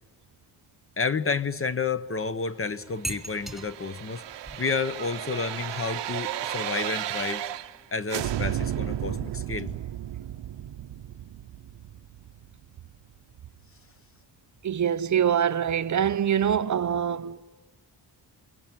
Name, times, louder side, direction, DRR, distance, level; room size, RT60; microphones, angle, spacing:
voice 1, 1.0-4.2 4.6-7.4 7.9-9.7, left 4 dB, 30° left, 1.0 m, -30 dB
sound 1, 2.9-7.9, right 1 dB, ahead, 1.1 m, -43 dB
sound 2, 3.1-7.8 8.1-13.0 13.3-13.4, right 12 dB, 75° right, 0.8 m, -34 dB
voice 2, 14.6-17.4, right 9 dB, 40° right, 0.8 m, -24 dB
28.5 x 23.5 x 9.1 m
wide cardioid pair, 150°, 44 cm